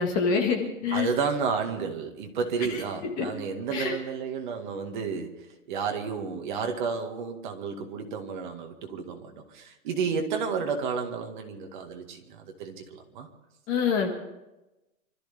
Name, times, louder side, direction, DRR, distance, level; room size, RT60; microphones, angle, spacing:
voice 1, 0.0-1.1 2.7-2.8 3.2-3.3 3.7-3.9 13.7-14.1, left 5 dB, 20° left, 2 dB, 1.6 m, -26 dB
voice 2, 0.9-13.3, right 5 dB, 35° right, 4 dB, 2.0 m, -31 dB
26.0 x 13.5 x 3.5 m, 0.97 s
hypercardioid pair, 160°, 44 cm